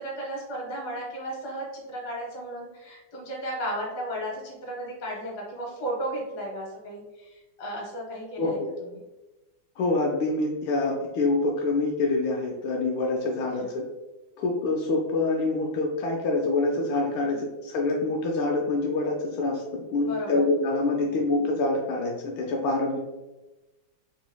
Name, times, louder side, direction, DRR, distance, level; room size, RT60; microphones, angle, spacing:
voice 1, 0.0-8.6 13.6-13.7 17.2-17.4 20.0-20.4 21.0-21.2 22.9-23.0, right 1 dB, 60° left, -2 dB, 1.5 m, -34 dB
voice 2, 8.4-8.7 9.8-13.9 14.4-23.0, left 2 dB, 85° left, -1 dB, 1.4 m, -26 dB
3.5 x 3.0 x 2.2 m, 1.1 s
omnidirectional pair, 2.2 m